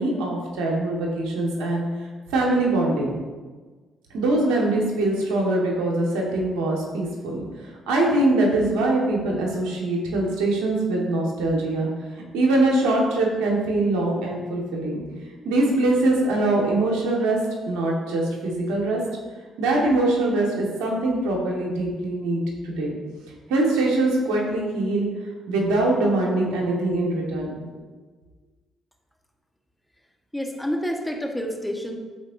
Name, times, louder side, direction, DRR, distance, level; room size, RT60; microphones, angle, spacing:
voice 1, 0.0-1.8 2.3-3.1 4.1-7.4 7.9-11.9 12.3-15.0 15.5-17.4 17.7-19.0 19.6-22.9 23.5-25.1 25.5-27.6, right 2 dB, 80° right, -2 dB, 1.6 m, -23 dB
voice 2, 30.3-32.0, equal, 5° left, 1 dB, 1.3 m, -28 dB
13.0 x 4.6 x 2.7 m, 1.4 s
hypercardioid pair, 50°, 0 cm